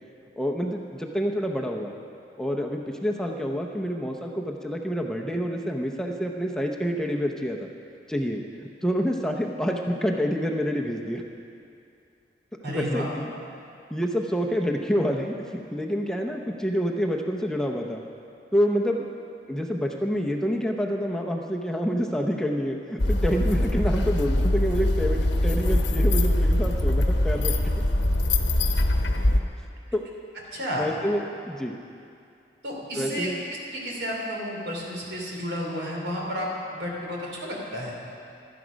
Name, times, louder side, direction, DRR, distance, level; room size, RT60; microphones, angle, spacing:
voice 1, 0.4-1.9 2.4-7.7 8.1-8.4 8.8-11.2 12.7-13.3 13.9-18.0 18.5-19.1 19.5-27.5 29.9-30.0 30.8-31.7 33.0-33.4, equal, 5° left, 0 dB, 0.7 m, -27 dB
voice 2, 12.6-13.1 30.3-30.9 32.6-33.3 33.7-36.5 36.7-37.9, equal, 70° right, -2 dB, 3.2 m, -31 dB
sound 1, 23.0-29.4, left 1 dB, 80° left, 1.0 m, -22 dB
16.0 x 12.5 x 5.2 m, 2.6 s
head